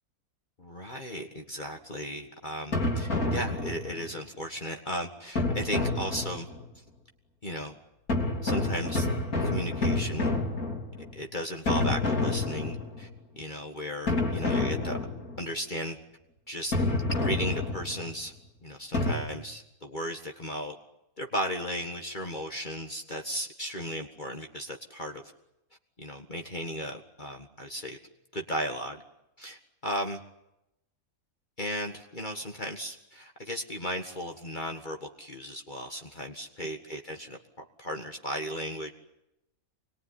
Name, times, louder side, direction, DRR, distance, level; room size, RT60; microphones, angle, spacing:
voice 1, 0.6-6.5 6.8-6.9 7.4-7.8 8.4-9.1 9.4-10.4 11.1-13.1 13.3-15.0 15.4-16.0 16.5-16.7 17.2-18.3 18.6-20.8 21.2-25.2 26.0-28.0 28.3-29.0 29.4-30.2 31.6-38.9, equal, 35° left, 3 dB, 1.9 m, -35 dB
sound 1, 2.7-4.1 5.4-6.7 8.1-11.2 11.7-13.2 14.1-15.5 16.7-18.1 18.9-19.1, left 2 dB, 80° left, 3.7 m, -29 dB
26.0 x 21.5 x 9.9 m, 0.87 s
omnidirectional pair, 1.5 m